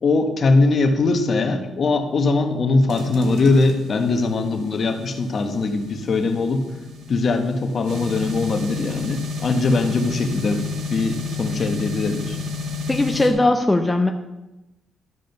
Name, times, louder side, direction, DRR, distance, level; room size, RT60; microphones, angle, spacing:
voice 1, 0.0-6.6 7.1-12.4, left 3 dB, 50° left, 6 dB, 1.4 m, -21 dB
sound 1, 2.9-13.3, left 4 dB, 75° right, 1.9 m, -31 dB
voice 2, 12.9-14.1, left 2 dB, 10° left, 5 dB, 0.8 m, -19 dB
12.5 x 5.1 x 6.8 m, 0.98 s
cardioid pair, 90°, 0 cm